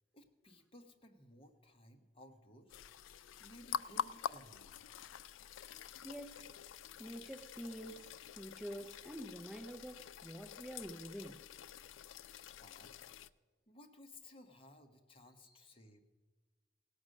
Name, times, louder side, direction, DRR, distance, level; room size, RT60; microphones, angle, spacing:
voice 1, 0.1-2.8 3.4-4.8 12.6-12.9 13.7-16.0, left 1 dB, 30° left, 0.9 m, -59 dB
sound 1, 2.7-13.3, left 8 dB, 85° left, 0.3 m, -47 dB
voice 2, 6.0-6.5 7.0-11.5 12.4-12.5 15.4-15.6, equal, 5° right, 0.4 m, -47 dB
17.0 x 6.3 x 6.4 m
head